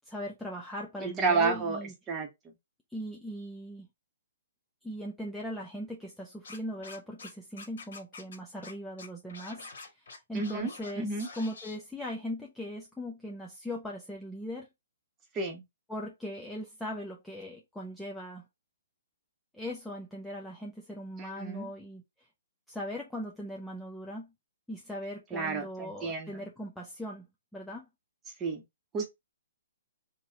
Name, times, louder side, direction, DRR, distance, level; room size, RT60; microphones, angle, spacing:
voice 1, 0.0-1.9 2.9-3.9 4.8-11.1 11.4-14.7 15.9-18.5 19.5-22.0 22.7-24.3 24.7-27.3 27.5-27.9, equal, 5° left, 0.5 m, -39 dB
voice 2, 1.0-2.3 10.3-10.7 11.0-11.3 15.3-15.6 21.2-21.7 25.3-26.4 28.4-28.6 28.9-29.1, right 4 dB, 15° right, 1.1 m, -31 dB
Scratching (performance technique), 6.4-7.3 7.6-8.4 8.6-8.7 9.0-10.9 11.2-11.8, left 4 dB, 70° left, 1.5 m, -46 dB
3.0 x 2.9 x 3.6 m
hypercardioid pair, 150°, 0 cm